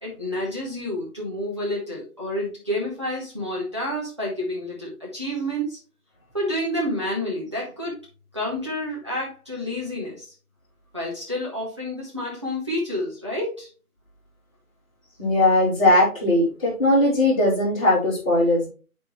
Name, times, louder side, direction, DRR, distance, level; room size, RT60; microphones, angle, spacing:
voice 1, 0.0-5.8 6.3-8.0 8.3-10.3 10.9-13.7, left 1 dB, 20° right, -5 dB, 0.8 m, -29 dB
voice 2, 15.2-18.7, left 1 dB, 25° left, -10 dB, 2.5 m, -19 dB
8.8 x 4.4 x 3.0 m, 0.34 s
figure-of-eight pair, 155°, 44 cm